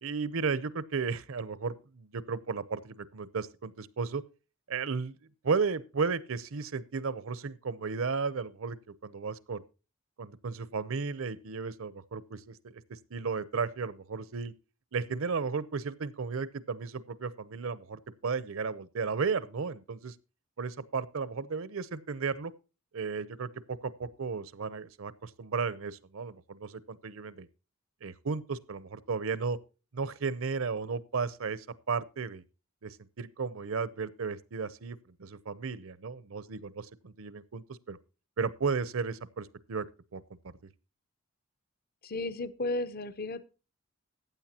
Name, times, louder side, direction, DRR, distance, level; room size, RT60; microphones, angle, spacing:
voice 1, 0.0-4.2 4.7-5.1 5.4-8.8 9.0-9.6 10.2-12.8 13.1-14.5 14.9-20.1 20.6-22.5 22.9-27.5 28.0-29.6 29.9-32.4 32.8-38.0 38.4-39.9 40.1-40.2, right 5 dB, 70° right, 0.7 m, -34 dB
voice 2, 42.0-43.4, left 2 dB, 45° left, 0.6 m, -34 dB
15.0 x 8.9 x 2.9 m
head